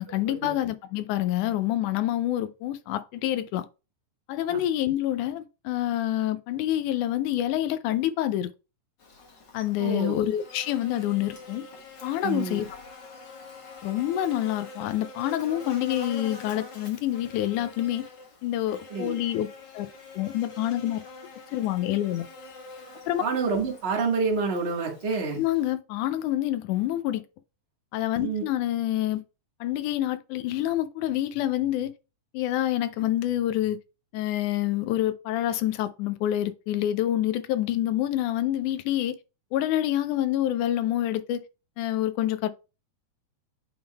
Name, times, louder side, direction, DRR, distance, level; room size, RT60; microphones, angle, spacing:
voice 1, 0.0-3.7 4.3-8.5 9.5-11.6 12.0-12.7 13.8-18.1 18.4-19.5 19.7-19.9 20.1-21.0 21.5-22.3 23.1-23.2 25.3-27.2 27.9-29.2 29.6-31.9 32.3-33.8 34.1-39.2 39.5-41.4 41.8-42.5, left 13 dB, 80° left, 1.9 m, -27 dB
Buzz, 9.0-25.7, left 3 dB, 45° left, 1.6 m, -45 dB
voice 2, 9.8-10.2 12.2-12.6 18.9-19.1 23.2-25.4 28.2-28.4, right 4 dB, 30° right, 1.2 m, -28 dB
8.8 x 3.6 x 3.4 m
omnidirectional pair, 3.8 m